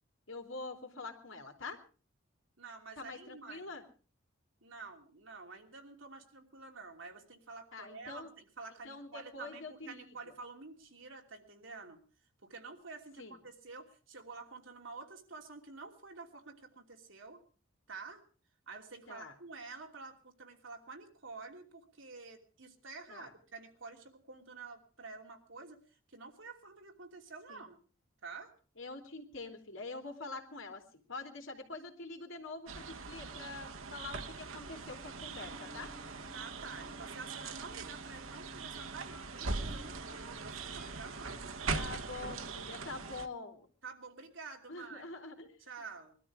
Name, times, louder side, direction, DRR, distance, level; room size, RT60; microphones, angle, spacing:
voice 1, 0.3-1.8 3.0-3.8 7.7-8.3 8.8-10.0 13.2-13.4 19.1-19.3 23.1-23.3 27.5-27.7 28.8-35.9 41.7-43.7 44.7-45.6, left 3 dB, 75° left, 4 dB, 3.0 m, -45 dB
voice 2, 2.6-3.7 4.6-12.0 12.4-17.4 17.9-18.2 18.7-25.8 26.1-27.8 28.2-28.5 36.3-41.4 43.8-45.1 45.6-46.1, right 4 dB, 75° right, 3 dB, 3.0 m, -49 dB
sound 1, 32.7-43.3, right 4 dB, 90° right, 1.4 m, -41 dB
sound 2, 35.3-41.3, left 1 dB, 45° right, 5.9 m, -59 dB
22.0 x 13.0 x 4.9 m, 0.38 s
head